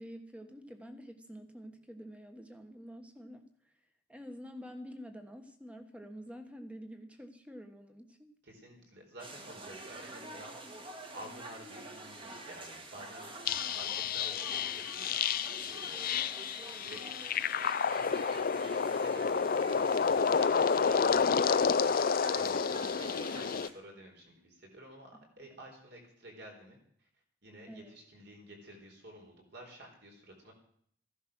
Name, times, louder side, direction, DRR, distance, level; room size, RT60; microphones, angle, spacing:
voice 1, 0.0-8.3 27.7-28.0, equal, 5° right, 7 dB, 1.4 m, -48 dB
voice 2, 8.4-10.6 11.1-15.2 15.7-16.0 16.8-17.2 17.9-21.1 21.6-22.0 22.3-27.1 27.4-30.5, right 1 dB, 60° right, 1 dB, 4.3 m, -51 dB
sound 1, 9.2-23.7, right 2 dB, 25° right, 1.8 m, -47 dB
sound 2, 13.5-23.7, left 6 dB, 50° left, 0.5 m, -30 dB
15.0 x 11.0 x 6.2 m, 0.64 s
head